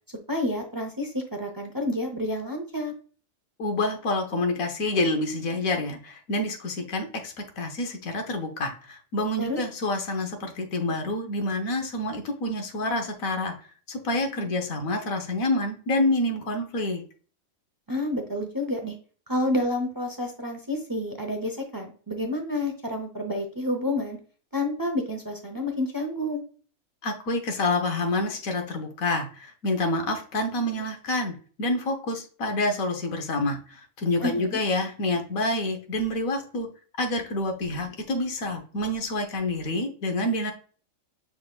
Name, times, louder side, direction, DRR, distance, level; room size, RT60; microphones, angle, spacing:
voice 1, 0.3-2.9 9.4-9.6 17.9-18.9 19.3-24.2 24.5-26.4 34.2-34.6, left 1 dB, 25° right, 3 dB, 0.4 m, -29 dB
voice 2, 3.6-13.5 13.9-17.0 27.0-36.7 37.0-40.5, left 2 dB, 85° left, 4 dB, 1.4 m, -28 dB
6.1 x 3.5 x 2.2 m, 0.41 s
omnidirectional pair, 1.4 m